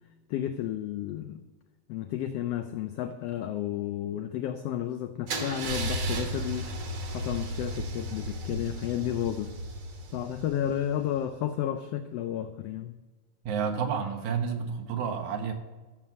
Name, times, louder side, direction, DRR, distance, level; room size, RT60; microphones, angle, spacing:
voice 1, 0.3-1.4 1.9-6.7 7.1-9.5 10.1-13.0, left 11 dB, 85° left, 9 dB, 1.4 m, -32 dB
Car / Engine starting / Idling, 5.3-11.1, right 1 dB, 60° right, 2.6 m, -34 dB
voice 2, 13.4-15.5, right 6 dB, 80° right, 5 dB, 2.6 m, -30 dB
13.5 x 6.9 x 6.2 m, 1.2 s
omnidirectional pair, 3.4 m